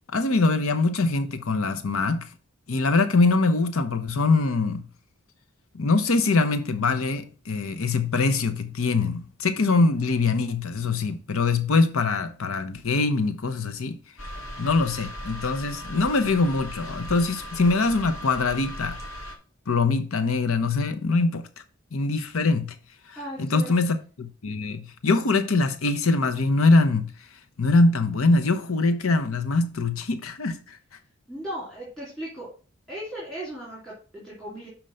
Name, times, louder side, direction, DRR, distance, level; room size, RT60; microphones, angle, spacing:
voice 1, 0.1-2.3 2.7-4.8 5.7-14.0 14.6-19.0 19.7-21.5 21.9-22.8 23.1-30.8, left 3 dB, 85° left, 0.7 m, -23 dB
sound 1, 14.2-19.3, equal, 70° left, 2.1 m, -38 dB
voice 2, 23.2-23.7 31.3-32.5 32.9-34.7, right 1 dB, 5° left, 2.7 m, -36 dB
6.4 x 4.4 x 5.5 m
head